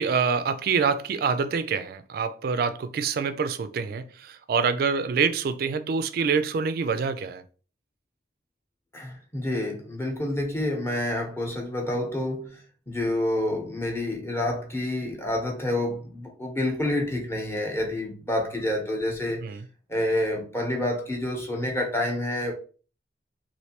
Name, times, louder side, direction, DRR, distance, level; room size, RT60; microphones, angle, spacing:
voice 1, 0.0-7.4 19.4-19.6, right 5 dB, 60° right, 0.3 m, -26 dB
voice 2, 8.9-19.4 19.9-22.5, left 1 dB, 15° left, 0.8 m, -28 dB
3.2 x 2.6 x 2.8 m
head